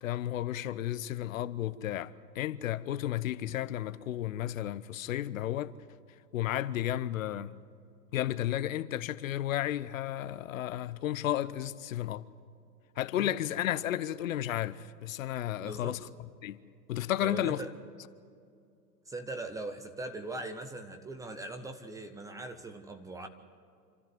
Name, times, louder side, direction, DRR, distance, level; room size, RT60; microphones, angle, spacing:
voice 1, 0.0-5.7 6.3-7.6 8.1-12.3 13.0-16.6 16.9-17.6, left 12 dB, 55° left, 0.9 m, -33 dB
voice 2, 15.6-16.0 17.2-17.7 19.1-23.3, right 2 dB, 5° right, 0.7 m, -40 dB
26.5 x 13.5 x 9.4 m
hypercardioid pair, 120°, 48 cm